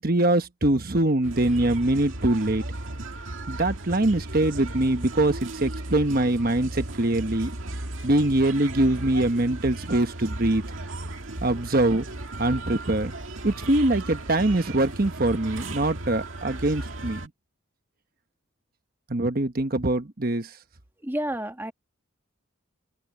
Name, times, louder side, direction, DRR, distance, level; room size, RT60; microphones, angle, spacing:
voice 1, 0.0-2.6 3.5-7.5 8.0-10.6 11.4-12.1 12.4-13.1 13.4-17.3 19.1-20.5, right 1 dB, 45° right, 1.2 m, -23 dB
sound 1, 1.2-17.3, right 2 dB, 70° right, 2.1 m, -35 dB
voice 2, 21.0-21.7, right 1 dB, 10° right, 1.3 m, -30 dB
open air
head